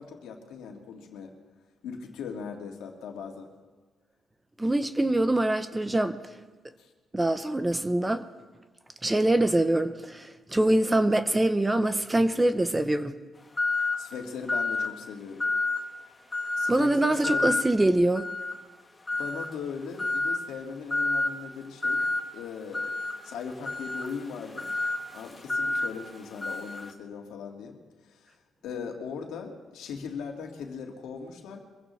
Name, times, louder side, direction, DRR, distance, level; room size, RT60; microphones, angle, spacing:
voice 1, 0.0-1.3 1.8-3.5 6.8-6.9 14.0-15.5 16.6-17.6 19.1-22.0 22.3-22.9 23.2-24.7 25.1-27.8 28.0-28.4 28.6-31.6, left 6 dB, 85° left, 2 dB, 2.0 m, -39 dB
voice 2, 4.6-6.2 7.1-8.2 9.0-13.1 16.7-18.2, right 1 dB, 15° right, 10 dB, 0.8 m, -24 dB
sound 1, 13.6-14.1 14.5-14.9 15.4-15.9 16.3-16.8 17.2-17.7 18.1-18.6 19.1-19.5 20.0-20.4 20.9-21.3 21.8-22.2 22.7-26.9, left 3 dB, 25° left, 1.4 m, -29 dB
24.0 x 15.5 x 3.2 m, 1.3 s
cardioid pair, 90°, 0 cm